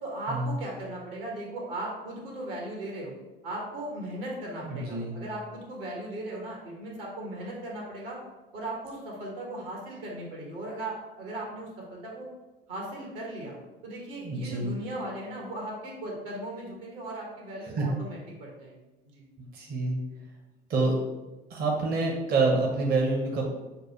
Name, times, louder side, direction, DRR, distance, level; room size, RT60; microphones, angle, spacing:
voice 1, 0.0-3.1 3.4-8.2 8.5-12.3 12.7-13.6 13.8-18.7 19.1-19.2, right 1 dB, 65° right, -2 dB, 1.4 m, -37 dB
voice 2, 4.6-5.1 14.1-14.7 17.8-17.9 19.5-20.0 20.7-20.9 21.5-23.4, right 3 dB, 35° right, -1 dB, 0.8 m, -27 dB
6.4 x 2.3 x 3.0 m, 1.1 s
figure-of-eight pair, 65°, 29 cm